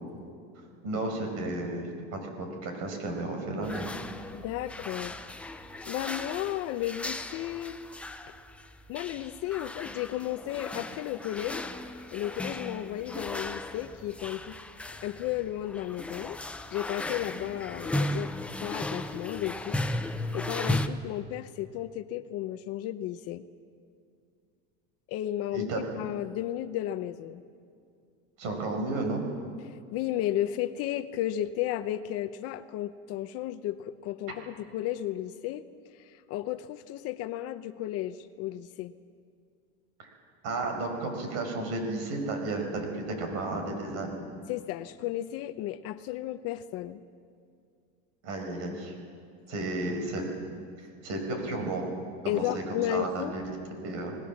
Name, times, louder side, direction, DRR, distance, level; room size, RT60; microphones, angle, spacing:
voice 1, 0.8-3.9 25.5-25.8 28.4-29.2 40.0-40.1 40.4-44.3 48.2-48.9 49.5-50.3 51.0-51.9 52.2-53.4 53.8-54.1, right 2 dB, 50° right, 4 dB, 5.1 m, -33 dB
sound 1, 3.6-20.9, left 1 dB, 5° left, 0.5 m, -36 dB
voice 2, 4.3-5.2 5.9-7.8 8.9-11.7 12.1-14.5 15.0-16.4 16.7-18.3 18.6-19.8 20.3-23.4 25.1-27.4 29.6-35.6 36.1-38.9 44.5-47.0 52.3-53.3, left 13 dB, 45° left, 11 dB, 0.8 m, -33 dB
26.5 x 19.0 x 7.2 m, 2.3 s
cardioid pair, 165°, 33 cm